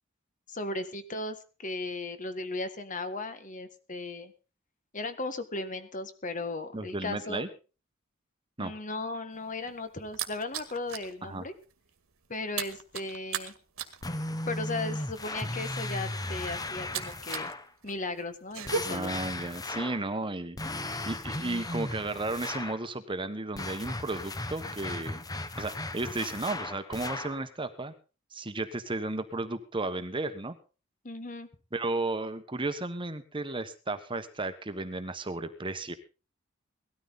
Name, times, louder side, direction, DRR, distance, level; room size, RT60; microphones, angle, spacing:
voice 1, 0.5-4.3 4.9-7.5 8.6-11.5 12.3-13.5 14.5-17.5 17.8-19.1 31.0-31.5, left 2 dB, 40° left, 10 dB, 1.6 m, -36 dB
voice 2, 6.7-7.5 8.6-8.7 11.2-11.4 18.9-25.2 25.6-27.9 28.3-30.6 31.7-35.9, right 2 dB, 25° right, 10 dB, 1.2 m, -34 dB
sound 1, 9.3-11.1 11.5-11.7 12.0-17.5 17.8-18.8, right 7 dB, 90° right, 1.9 m, -37 dB
sound 2, 14.0-17.7 18.7-20.1 20.6-22.8 23.6-27.4, left 2 dB, 20° left, 0.9 m, -36 dB
18.5 x 13.0 x 4.0 m, 0.34 s
head